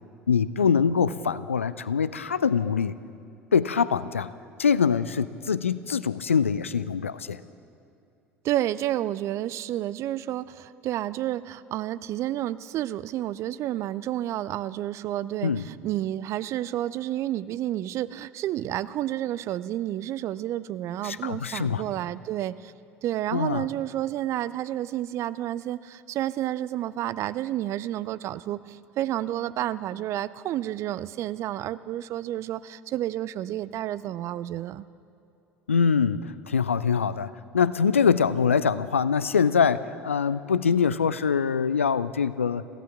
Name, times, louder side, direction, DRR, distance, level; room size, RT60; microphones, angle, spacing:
voice 1, 0.3-2.9 3.5-4.3 4.6-7.4 15.4-15.6 21.0-21.8 23.3-23.6 35.7-42.6, left 6 dB, 80° left, 16 dB, 0.4 m, -24 dB
voice 2, 8.4-22.7 23.0-34.9, right 13 dB, 45° right, 17 dB, 0.4 m, -30 dB
23.0 x 16.0 x 3.5 m, 2.6 s
figure-of-eight pair, 65°, 7 cm